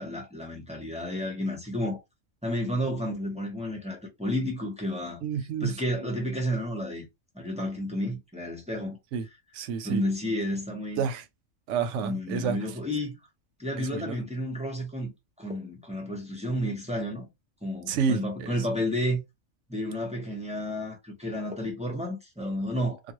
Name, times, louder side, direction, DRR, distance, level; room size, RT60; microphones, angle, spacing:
voice 1, 0.0-2.0 2.4-5.2 5.6-7.1 7.3-9.0 9.8-11.0 12.0-13.2 13.6-15.1 15.4-17.3 17.6-19.2 19.7-23.0, equal, 5° right, 0.5 m, -31 dB
voice 2, 5.2-5.8 9.1-9.2 9.5-10.0 11.0-11.2 11.7-12.6 13.8-14.2 17.9-18.6, right 6 dB, 65° right, 0.8 m, -29 dB
2.4 x 2.3 x 2.9 m
omnidirectional pair, 1.5 m